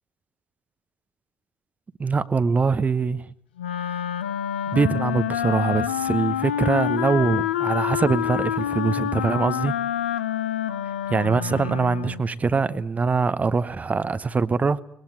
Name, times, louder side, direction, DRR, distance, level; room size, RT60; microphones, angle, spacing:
voice 1, 2.0-3.2 4.7-9.7 11.1-14.8, right 4 dB, 25° right, 1.0 m, -23 dB
Wind instrument woodwind instrument, 3.6-12.2, left 10 dB, 75° left, 0.9 m, -27 dB
24.0 x 20.5 x 9.3 m
figure-of-eight pair, 50°, 6 cm